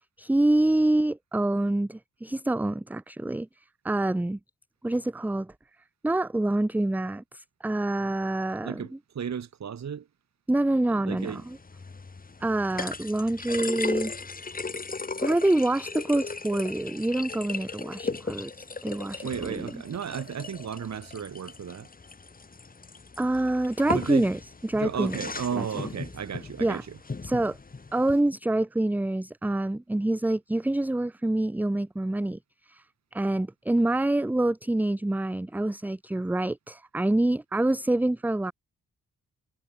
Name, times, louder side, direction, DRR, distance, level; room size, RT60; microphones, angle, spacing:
voice 1, 0.2-3.5 3.8-4.4 4.8-5.5 6.0-8.8 10.5-11.6 12.4-14.1 15.2-19.8 23.2-25.2 25.6-25.7 26.6-26.8 27.2-27.6 27.9-32.4 32.7-32.8 33.1-38.5, right 1 dB, 5° right, 0.4 m, -26 dB
voice 2, 8.6-10.1 10.9-11.4 19.2-21.9 23.9-24.3 24.8-27.0, right 7 dB, 55° right, 2.1 m, -34 dB
sound 1, 11.2-28.2, left 4 dB, 25° left, 2.9 m, -37 dB
wide cardioid pair, 170°, 34 cm